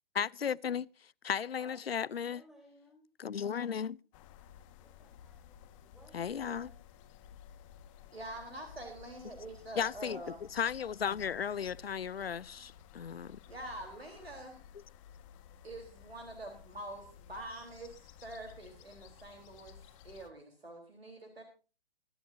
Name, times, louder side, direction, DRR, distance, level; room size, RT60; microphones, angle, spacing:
voice 1, 0.1-2.4 3.2-4.0 6.1-6.7 9.8-10.2 10.5-13.4, left 7 dB, 80° left, 0.7 m, -35 dB
voice 2, 1.6-3.0 4.8-6.9, right 1 dB, ahead, 6.2 m, -60 dB
sound 1, 4.1-20.3, left 9 dB, 35° left, 1.6 m, -55 dB
voice 3, 8.1-10.5 12.5-12.6 13.5-14.6 15.6-21.4, right 1 dB, 85° right, 3.9 m, -46 dB
23.0 x 12.0 x 2.7 m
figure-of-eight pair, 125°, 29 cm